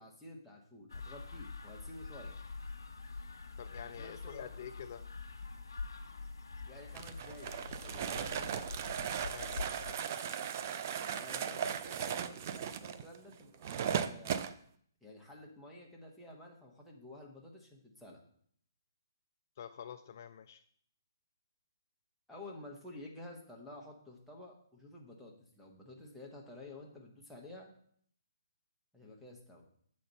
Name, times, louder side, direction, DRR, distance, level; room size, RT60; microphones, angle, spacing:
voice 1, 0.0-2.3 4.0-4.5 6.6-8.6 11.0-14.4 15.0-18.2 22.3-27.7 28.9-29.6, left 1 dB, ahead, -4 dB, 1.2 m, -51 dB
sound 1, 0.9-10.0, left 4 dB, 90° left, 1.1 m, -45 dB
voice 2, 3.6-5.0 9.2-9.8 19.6-20.6, left 8 dB, 45° left, 9 dB, 0.3 m, -47 dB
sound 2, 6.9-14.5, right 8 dB, 40° right, 0.4 m, -37 dB
7.5 x 4.3 x 5.4 m, 0.62 s
hypercardioid pair, 155°, 2 cm